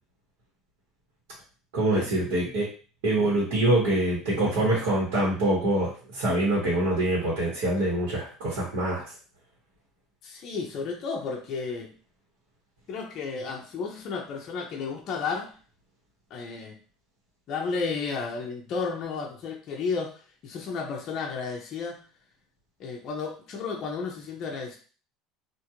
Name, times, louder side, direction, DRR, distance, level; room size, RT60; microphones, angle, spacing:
voice 1, 1.7-2.7 3.0-9.0, right 1 dB, 80° right, -6 dB, 1.2 m, -25 dB
voice 2, 10.2-11.9 12.9-15.5 16.3-16.8 17.5-22.0 22.8-24.8, left 5 dB, 35° left, 0 dB, 0.5 m, -32 dB
2.4 x 2.4 x 2.9 m, 0.38 s
cardioid pair, 175°, 0 cm